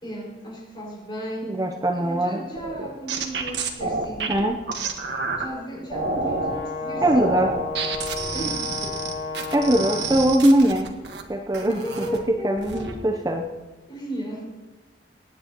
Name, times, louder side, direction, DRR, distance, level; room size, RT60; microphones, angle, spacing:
voice 1, 0.0-4.3 5.4-7.4 8.3-9.0 11.7-13.1 13.9-14.5, right 1 dB, 25° left, -4 dB, 5.1 m, -35 dB
voice 2, 1.4-2.4 4.3-4.6 7.0-7.5 9.5-10.9 11.3-11.8 12.4-13.5, right 1 dB, 20° right, 3 dB, 0.6 m, -21 dB
sound 1, 2.6-5.5 5.9-6.6 7.0-11.2 11.5-12.2 12.6-12.9, right 4 dB, 85° right, 1.5 m, -29 dB
Brass instrument, 5.9-10.3, left 4 dB, 70° left, 2.7 m, -32 dB
24.0 x 9.8 x 2.9 m, 1.2 s
head